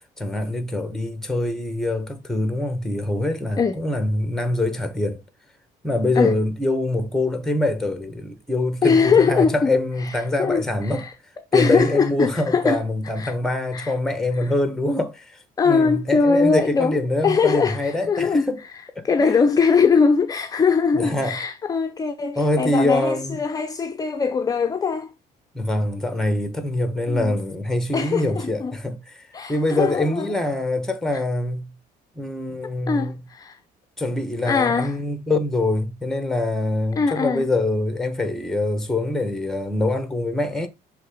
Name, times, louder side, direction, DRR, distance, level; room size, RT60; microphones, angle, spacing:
voice 1, 0.2-5.2 5.8-11.0 11.5-15.4 15.7-18.6 18.9-19.4 20.9-21.3 22.4-23.4 25.5-29.2 29.5-31.7 32.2-33.1 34.0-40.7, left 2 dB, 5° left, 1.2 m, -24 dB
voice 2, 8.8-9.7 10.0-11.1 11.5-12.8 13.2-13.3 13.7-13.9 14.3-14.5 15.6-25.1 27.1-27.4 27.9-28.8 29.3-30.3 32.9-33.6 34.4-35.0 37.0-37.5, left 5 dB, 20° left, 0.5 m, -21 dB
6.4 x 3.4 x 4.9 m
cardioid pair, 110°, 17 cm